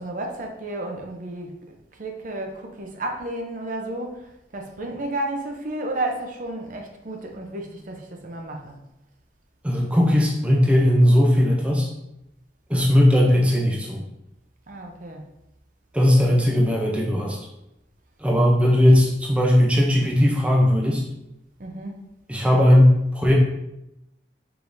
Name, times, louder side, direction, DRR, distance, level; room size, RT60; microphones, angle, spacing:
voice 1, 0.0-1.5 2.0-4.3 4.5-8.8 14.7-15.2 21.6-22.0, right 1 dB, 50° right, 2 dB, 0.6 m, -32 dB
voice 2, 9.6-11.9 12.7-14.0 15.9-17.4 18.2-21.0 22.3-23.3, left 1 dB, 5° right, -2 dB, 0.5 m, -18 dB
4.7 x 3.5 x 2.6 m, 0.87 s
head